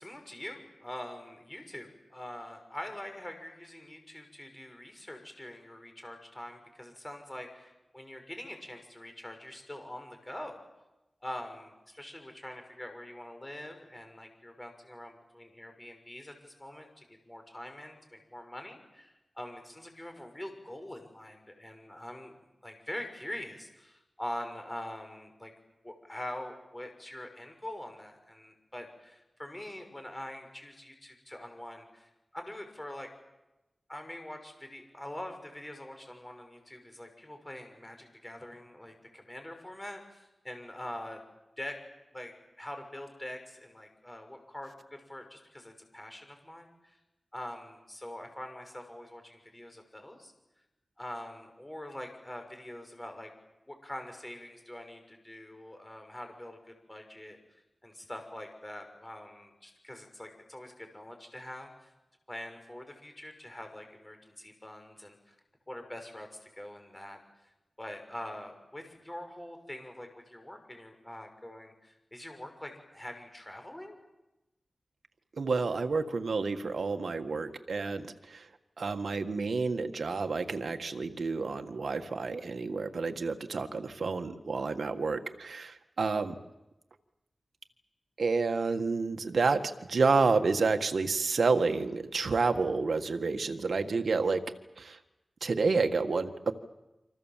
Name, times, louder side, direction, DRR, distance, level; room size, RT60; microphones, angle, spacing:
voice 1, 0.0-10.6 11.2-25.5 25.8-33.1 33.9-41.2 41.6-41.8 42.1-47.0 47.3-50.3 51.0-53.3 53.7-61.9 62.3-65.3 65.7-66.3 66.5-67.2 67.8-74.0, left 1 dB, 20° left, 5 dB, 5.9 m, -44 dB
voice 2, 75.4-78.4 78.8-86.3 88.2-89.6 89.9-94.4 94.8-95.0 95.4-96.5, right 4 dB, 80° right, 6 dB, 1.7 m, -29 dB
27.5 x 26.0 x 7.5 m, 0.99 s
wide cardioid pair, 60°, 0 cm